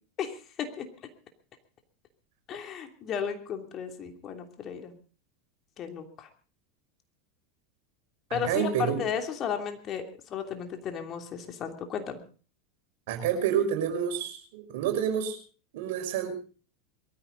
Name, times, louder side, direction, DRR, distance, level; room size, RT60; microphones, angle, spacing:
voice 1, 0.2-0.8 2.5-4.9 5.8-6.3 8.3-12.2, left 7 dB, 40° left, 5 dB, 3.0 m, -34 dB
voice 2, 8.3-9.0 13.1-15.4 15.7-16.3, right 8 dB, 65° right, 5 dB, 5.5 m, -28 dB
22.5 x 14.0 x 4.0 m, 0.39 s
hypercardioid pair, 90°, 0 cm